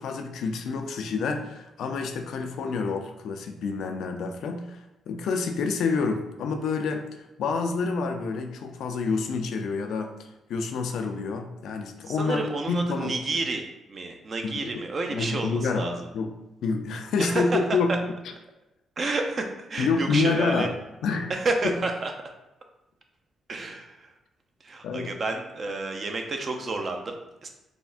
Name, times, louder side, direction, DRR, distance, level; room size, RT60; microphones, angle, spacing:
voice 1, 0.0-10.1 10.5-12.4 12.7-13.2 14.4-14.8 15.1-16.3 16.6-18.0 18.2-18.3 19.8-21.3 24.8-25.1, left 4 dB, 75° left, 5 dB, 0.3 m, -28 dB
voice 2, 12.1-15.9 17.2-17.6 19.0-20.7 21.3-22.1 23.5-24.0 24.6-27.5, right 3 dB, 45° right, 4 dB, 0.4 m, -30 dB
3.4 x 2.1 x 2.4 m, 0.98 s
cardioid pair, 80°, 0 cm